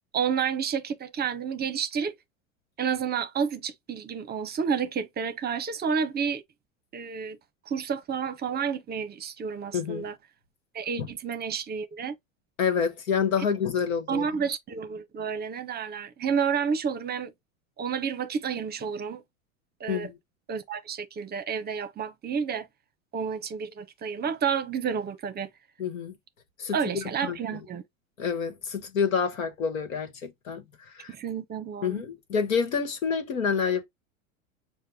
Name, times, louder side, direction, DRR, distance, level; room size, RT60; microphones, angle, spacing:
voice 1, 0.1-2.1 2.8-6.4 6.9-7.4 7.7-10.1 10.7-12.1 14.1-17.3 17.8-19.2 19.8-20.1 20.5-22.7 23.1-25.5 26.7-27.8 31.1-32.0, right 6 dB, 25° right, 0.7 m, -30 dB
voice 2, 9.7-10.1 11.0-11.1 12.6-14.3 19.9-20.2 25.8-26.1 26.6-27.6 28.2-31.1 31.8-33.9, left 6 dB, 75° left, 1.3 m, -28 dB
6.6 x 2.2 x 3.6 m
hypercardioid pair, 95°, 41 cm